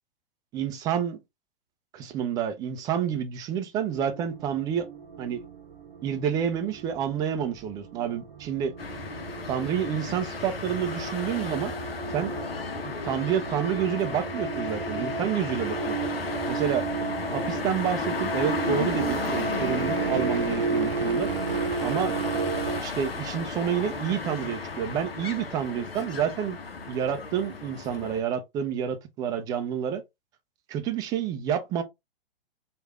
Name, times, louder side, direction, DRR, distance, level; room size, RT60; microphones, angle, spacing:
voice 1, 0.5-1.2 1.9-4.9 5.2-5.4 6.0-8.7 9.5-11.7 12.1-12.4 12.8-15.9 16.5-16.9 17.3-21.3 21.8-22.2 22.8-26.6 26.9-30.0 30.7-31.8, right 8 dB, 15° right, 0.3 m, -29 dB
sound 1, 3.9-22.8, right 4 dB, 70° right, 0.7 m, -33 dB
sound 2, 8.8-28.2, left 4 dB, 80° left, 0.8 m, -34 dB
3.1 x 2.4 x 3.0 m
figure-of-eight pair, 110°, 29 cm